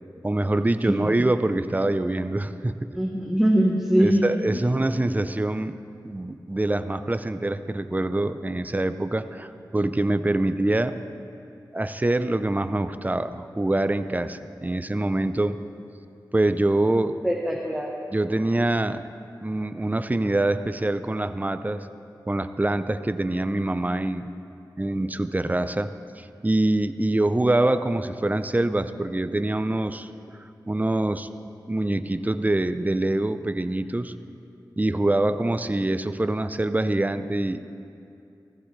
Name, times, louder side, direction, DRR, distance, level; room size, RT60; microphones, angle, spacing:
voice 1, 0.2-2.9 4.0-5.8 6.0-11.0 11.7-15.6 16.3-17.1 18.1-19.1 19.4-21.9 22.3-24.3 24.8-30.1 30.7-31.3 31.7-34.1 34.8-37.7, right 2 dB, 20° right, 11 dB, 0.6 m, -25 dB
voice 2, 0.8-1.1 2.9-4.2 4.5-4.6 17.2-18.0, equal, 5° right, -1 dB, 1.2 m, -22 dB
16.5 x 15.0 x 3.3 m, 2.6 s
cardioid pair, 55°, 8 cm